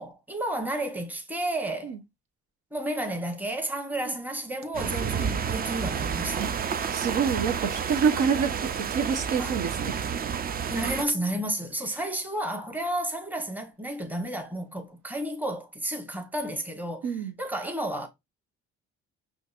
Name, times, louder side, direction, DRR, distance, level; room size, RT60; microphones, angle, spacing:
voice 1, 0.0-1.9 2.7-6.5 9.4-9.5 10.7-17.1 17.4-18.1, right 1 dB, 5° right, 0.9 m, -32 dB
sound 1, 4.7-11.1, right 7 dB, 30° right, 0.4 m, -30 dB
voice 2, 6.9-9.9 17.0-17.3, right 6 dB, 80° right, 0.9 m, -27 dB
5.1 x 2.6 x 2.4 m
cardioid pair, 90°, 30 cm